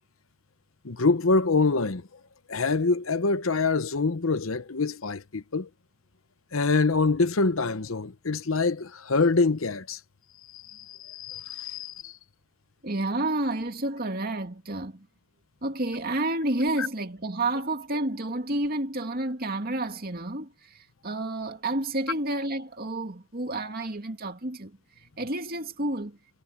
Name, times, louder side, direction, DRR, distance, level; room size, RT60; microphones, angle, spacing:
voice 1, 0.8-2.1 2.5-5.7 6.5-10.0 10.5-12.1 16.8-16.9, left 3 dB, 70° left, 1.0 m, -25 dB
voice 2, 12.8-15.1 15.6-24.8 25.2-26.2, right 2 dB, 45° right, 2.5 m, -30 dB
head